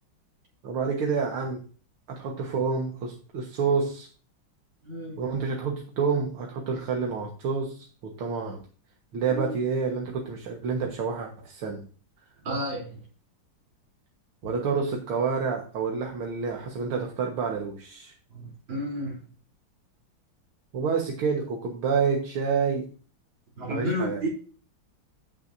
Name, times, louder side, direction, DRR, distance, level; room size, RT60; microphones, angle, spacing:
voice 1, 0.6-1.6 2.1-4.1 5.2-8.6 9.1-11.9 14.4-18.1 20.7-22.9 23.7-24.2, right 5 dB, 80° right, 1 dB, 2.3 m, -28 dB
voice 2, 4.8-5.2 9.3-9.5 12.4-13.0 18.3-19.3 23.6-24.3, equal, 65° right, -2 dB, 4.2 m, -31 dB
16.0 x 6.2 x 2.6 m, 0.39 s
omnidirectional pair, 2.3 m